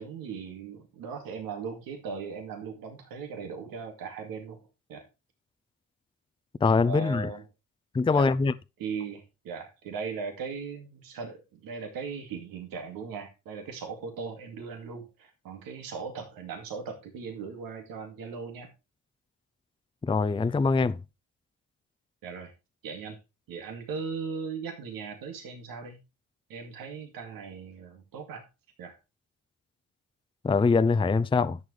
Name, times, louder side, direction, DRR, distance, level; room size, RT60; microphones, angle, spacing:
voice 1, 0.0-5.1 6.8-7.4 8.1-8.3 8.8-18.7 22.2-22.5 22.8-23.2 23.5-26.0 26.5-28.5 28.8-29.0, right 5 dB, 90° right, 2.3 m, -38 dB
voice 2, 6.6-7.3 7.9-8.5 20.0-20.9 30.4-31.6, left 4 dB, 15° left, 0.5 m, -23 dB
10.5 x 7.3 x 3.3 m
cardioid pair, 70°, 34 cm